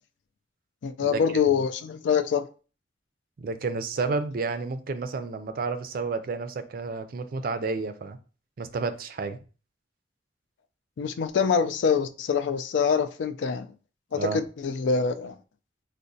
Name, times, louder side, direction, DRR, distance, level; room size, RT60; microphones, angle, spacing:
voice 1, 0.8-2.5 11.0-13.7 14.1-15.4, left 6 dB, 75° left, 0.3 m, -25 dB
voice 2, 3.4-8.2 8.6-9.4 14.1-14.4, right 4 dB, 50° right, 0.4 m, -31 dB
4.6 x 2.1 x 2.6 m
head